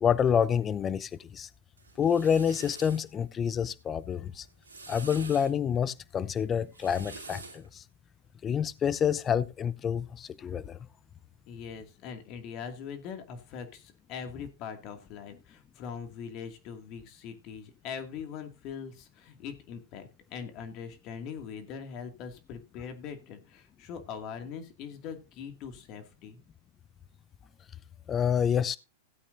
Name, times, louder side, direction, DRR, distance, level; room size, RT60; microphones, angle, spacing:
voice 1, 0.0-1.5 2.0-4.5 4.9-7.8 8.4-10.8 28.1-28.8, left 8 dB, 25° left, 0.6 m, -28 dB
sound 1, 1.8-3.1 4.4-5.5 6.6-7.7, right 3 dB, 85° right, 2.8 m, -46 dB
voice 2, 11.5-26.4, left 7 dB, 45° left, 2.4 m, -42 dB
16.5 x 8.5 x 2.7 m
hypercardioid pair, 105°, 0 cm